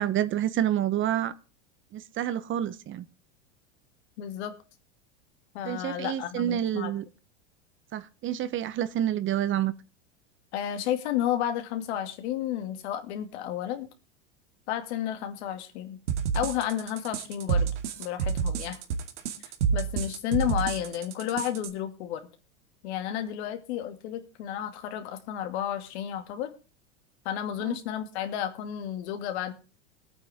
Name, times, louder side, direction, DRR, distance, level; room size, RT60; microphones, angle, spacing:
voice 1, 0.0-1.3 1.9-3.1 5.6-7.0 7.9-9.7 27.6-27.8, right 11 dB, 35° right, 15 dB, 0.9 m, -28 dB
voice 2, 4.2-4.5 5.5-6.9 10.5-13.9 14.7-16.0 16.3-17.7 18.0-18.8 19.7-22.2 22.8-26.5 27.2-29.5, left 11 dB, 65° left, 7 dB, 2.4 m, -32 dB
sound 1, 16.1-21.7, right 6 dB, 75° right, 2.3 m, -29 dB
21.0 x 8.9 x 3.6 m, 0.35 s
hypercardioid pair, 105°, 36 cm